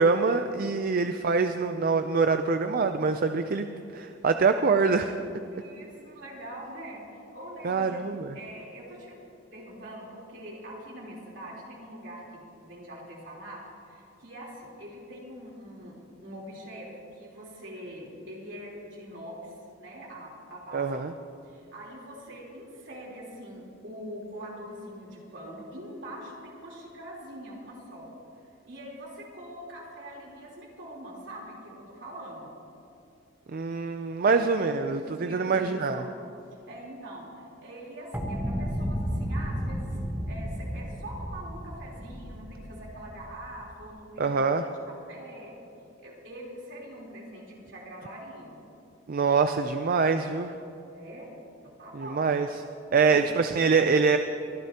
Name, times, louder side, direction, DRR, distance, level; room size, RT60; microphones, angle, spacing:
voice 1, 0.0-3.7 3.9-5.1 7.6-8.4 20.7-21.1 33.5-36.0 44.2-44.6 49.1-50.5 52.0-52.5 52.9-54.2, right 4 dB, 50° right, 8 dB, 0.5 m, -24 dB
voice 2, 5.5-8.0 8.3-9.2 9.5-20.9 21.4-28.1 28.6-32.5 35.0-36.1 36.7-40.0 40.3-44.5 44.9-45.6 46.0-48.6 50.9-51.3 51.6-52.2, right 1 dB, 70° right, -3 dB, 3.6 m, -43 dB
sound 1, 38.1-43.8, equal, 10° right, 1.0 m, -33 dB
23.0 x 12.5 x 2.9 m, 2.7 s
head